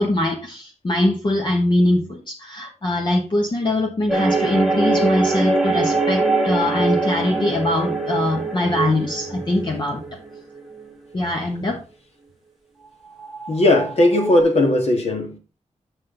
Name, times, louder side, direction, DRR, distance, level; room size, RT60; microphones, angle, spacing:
voice 1, 0.0-10.2 11.1-11.8, left 1 dB, 40° left, 1.2 m, -22 dB
sound 1, 4.1-10.9 13.2-14.4, right 3 dB, ahead, 1.5 m, -23 dB
voice 2, 13.5-15.4, left 1 dB, 60° left, 2.0 m, -17 dB
7.6 x 6.3 x 3.9 m
wide cardioid pair, 135°, 12 cm